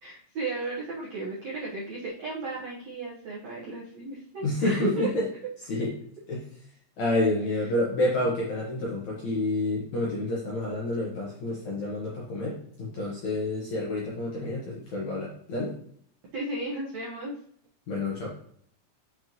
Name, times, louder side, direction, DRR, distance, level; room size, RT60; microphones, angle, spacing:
voice 1, 0.0-5.1 16.3-17.3, right 3 dB, 80° right, -5 dB, 1.5 m, -34 dB
voice 2, 4.4-5.2 5.7-5.9 6.3-6.4 7.0-15.7 17.9-18.3, left 2 dB, 65° left, -5 dB, 1.9 m, -29 dB
7.4 x 5.3 x 3.0 m, 0.62 s
omnidirectional pair, 5.2 m